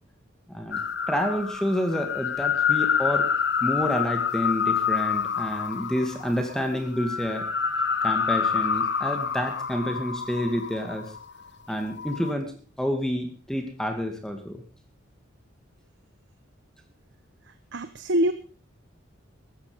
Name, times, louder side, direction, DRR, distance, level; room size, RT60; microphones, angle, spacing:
voice 1, 0.5-0.8 1.1-3.3 3.6-7.4 8.0-11.1 11.7-14.6, equal, 5° left, 5 dB, 2.3 m, -29 dB
sound 1, 0.7-11.3 11.8-12.3, left 7 dB, 60° left, 1.1 m, -27 dB
voice 2, 17.7-18.3, right 1 dB, 60° right, 10 dB, 1.1 m, -24 dB
15.0 x 14.5 x 5.2 m, 0.37 s
head